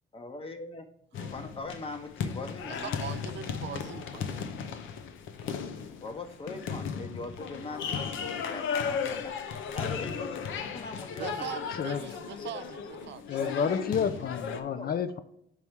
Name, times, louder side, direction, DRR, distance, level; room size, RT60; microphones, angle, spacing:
voice 1, 0.1-0.9 1.1-3.0 6.0-9.4 9.7-11.7 12.4-12.5 14.6-14.9, left 3 dB, 30° left, 7 dB, 1.1 m, -41 dB
sound 1, 1.1-14.6, left 6 dB, 80° left, 0.7 m, -36 dB
voice 2, 2.7-4.5 11.2-13.7, right 10 dB, 65° right, 11 dB, 0.5 m, -41 dB
voice 3, 13.3-15.2, left 7 dB, 50° left, 11 dB, 0.5 m, -30 dB
5.5 x 4.7 x 4.7 m, 0.76 s
cardioid pair, 90°, 20 cm